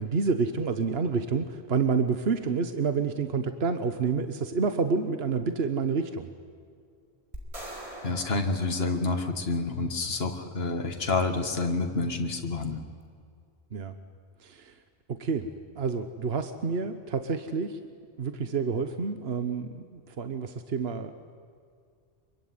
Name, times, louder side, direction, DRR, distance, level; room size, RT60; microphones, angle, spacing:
voice 1, 0.0-6.3 13.7-13.9 14.4-14.7 15.1-15.5 15.7-17.8 18.2-21.1, right 5 dB, 65° right, 9 dB, 1.4 m, -28 dB
sound 1, 7.3-9.7, right 1 dB, 30° right, 5.0 m, -43 dB
voice 2, 8.0-12.8, left 3 dB, 65° left, 5 dB, 2.1 m, -28 dB
25.5 x 23.5 x 9.7 m, 2.2 s
omnidirectional pair, 1.1 m